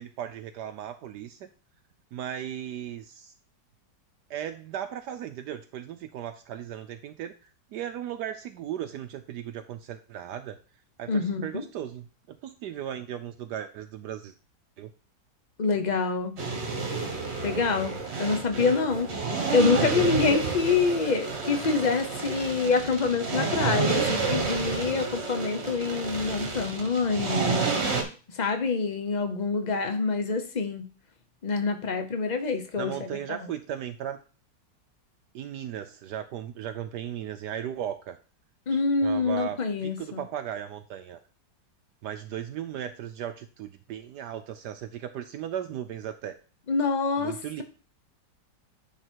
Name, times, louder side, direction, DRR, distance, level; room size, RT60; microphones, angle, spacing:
voice 1, 0.0-1.5 2.1-3.3 4.3-7.3 7.7-10.6 11.0-14.3 14.8-14.9 32.8-34.2 35.3-38.2 38.7-41.2 42.0-46.4 47.2-47.6, right 10 dB, 75° right, 8 dB, 1.1 m, -36 dB
voice 2, 11.1-11.6 15.6-16.4 17.4-19.1 19.5-27.8 28.3-30.9 31.4-33.5 38.7-40.2 46.7-47.6, left 4 dB, 40° left, 7 dB, 0.6 m, -26 dB
sound 1, 16.4-28.0, right 4 dB, 40° right, 1.5 m, -30 dB
9.4 x 4.0 x 4.5 m, 0.37 s
omnidirectional pair, 1.9 m